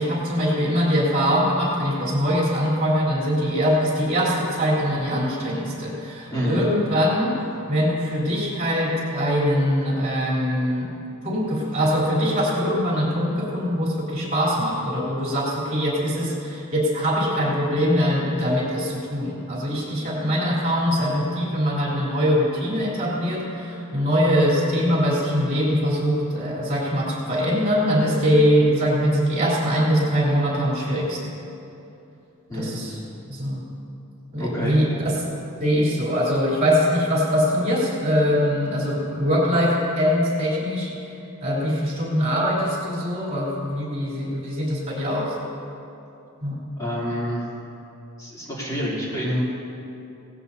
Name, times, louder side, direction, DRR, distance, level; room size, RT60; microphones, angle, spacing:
voice 1, 0.0-7.4 7.7-10.9 11.2-31.3 32.5-33.0 33.3-33.6 34.3-35.1 35.6-41.1 41.4-45.3 46.4-46.6, equal, 35° right, -6 dB, 3.6 m, -22 dB
voice 2, 6.3-6.6 32.5-32.9 34.4-34.8 46.8-47.4 48.2-49.4, equal, 15° left, -9 dB, 3.2 m, -27 dB
17.5 x 16.5 x 2.8 m, 2.8 s
head